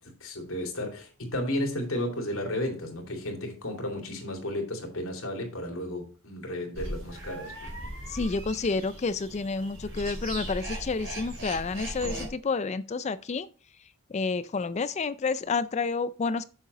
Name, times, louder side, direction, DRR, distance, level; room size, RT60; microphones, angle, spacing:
voice 1, 0.2-7.7, left 1 dB, 75° left, 2.6 m, -33 dB
sound 1, 6.7-12.3, right 1 dB, 60° right, 3.8 m, -38 dB
voice 2, 8.1-13.5 14.1-16.4, left 4 dB, 30° left, 0.4 m, -29 dB
7.3 x 6.7 x 4.0 m
head